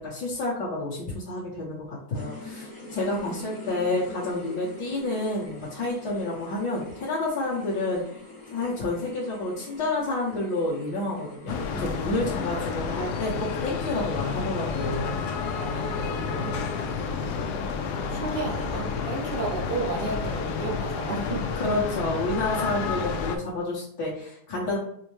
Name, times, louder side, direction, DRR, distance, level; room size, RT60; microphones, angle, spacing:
voice 1, 0.0-8.0 8.5-15.1 21.6-24.8, left 2 dB, 60° left, -8 dB, 1.7 m, -29 dB
sound 1, 2.1-17.2, left 1 dB, 40° left, 1.2 m, -45 dB
sound 2, 11.5-23.4, left 5 dB, 75° left, 0.9 m, -30 dB
voice 2, 15.5-17.8 18.1-21.4, right 3 dB, 75° right, -2 dB, 0.5 m, -34 dB
5.6 x 2.0 x 3.1 m, 0.68 s
omnidirectional pair, 2.2 m